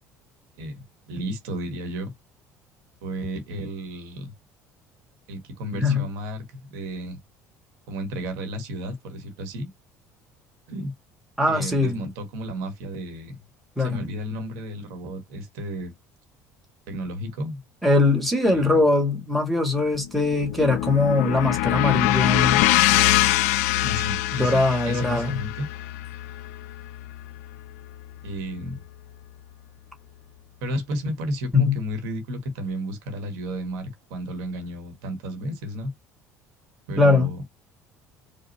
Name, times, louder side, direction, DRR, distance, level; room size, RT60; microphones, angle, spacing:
voice 1, 0.6-2.1 3.0-4.3 5.3-7.2 7.9-9.7 10.7-10.9 11.5-13.3 13.8-15.9 16.9-17.6 18.4-18.8 23.8-25.7 28.2-28.8 30.6-35.9 36.9-37.4, equal, 60° right, 1.5 m, -32 dB
voice 2, 5.7-6.1 11.4-12.0 13.8-14.0 17.8-22.7 24.4-25.4 31.5-31.8 37.0-37.3, left 3 dB, ahead, 2.0 m, -21 dB
sound 1, 19.9-28.2, left 16 dB, 60° left, 0.4 m, -24 dB
5.0 x 2.4 x 2.9 m
figure-of-eight pair, 60°, 9 cm